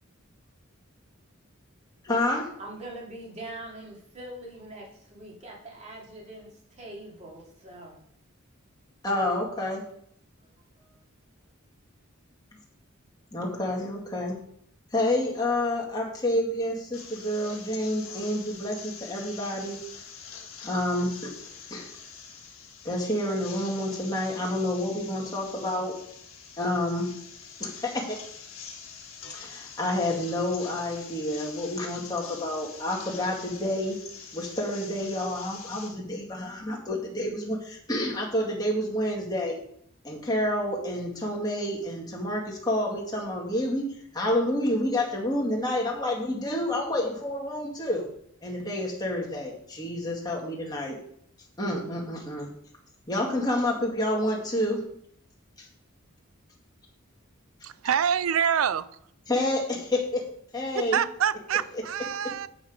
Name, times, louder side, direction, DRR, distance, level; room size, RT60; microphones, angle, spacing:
voice 1, 2.0-2.5 9.0-9.8 13.3-14.4 14.9-19.8 20.6-21.3 21.7-21.9 22.8-25.9 26.6-27.1 27.6-28.2 29.3-34.0 34.3-39.6 40.0-43.9 44.1-48.1 48.4-51.0 51.6-52.5 53.1-54.8 55.6-55.7 59.3-60.2 60.5-61.0, left 1 dB, 20° left, -3 dB, 2.1 m, -29 dB
voice 2, 2.6-8.0 10.4-10.5 10.8-11.0, right 1 dB, 35° right, -3 dB, 2.6 m, -43 dB
sound 1, 16.9-35.9, left 6 dB, 80° left, 1.5 m, -45 dB
voice 3, 57.6-58.8 60.7-62.5, right 8 dB, 75° right, 16 dB, 0.4 m, -26 dB
8.1 x 6.0 x 5.1 m, 0.68 s
head